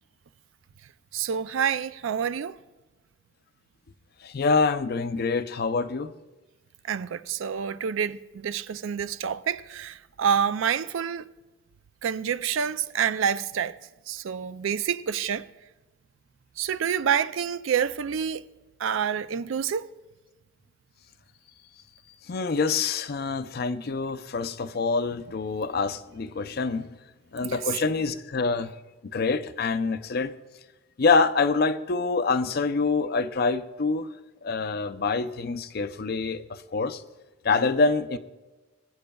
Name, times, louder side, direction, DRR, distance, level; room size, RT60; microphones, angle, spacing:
voice 1, 1.1-2.6 6.8-11.3 12.0-13.8 14.1-15.4 16.6-18.4 18.8-19.9 27.5-27.6, right 7 dB, 75° right, 0.4 m, -27 dB
voice 2, 4.2-6.1 22.3-26.9 27.3-28.7 29.1-30.3 31.0-34.1 34.4-37.0 37.4-38.2, left 4 dB, 50° left, 0.5 m, -26 dB
21.0 x 9.4 x 2.3 m
head